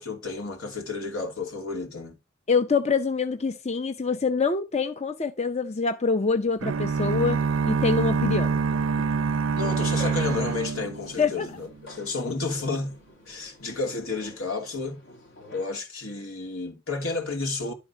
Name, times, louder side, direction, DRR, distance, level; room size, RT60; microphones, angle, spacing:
voice 1, 0.0-2.2 9.5-12.9 13.3-15.0 15.5-17.7, left 3 dB, 80° left, 2.8 m, -31 dB
voice 2, 2.5-8.6 11.2-11.5, left 4 dB, 30° left, 0.6 m, -25 dB
sound 1, 6.6-11.6, right 5 dB, 60° right, 0.4 m, -26 dB
sound 2, 9.6-15.7, left 1 dB, 60° left, 2.5 m, -46 dB
11.5 x 4.0 x 5.6 m
head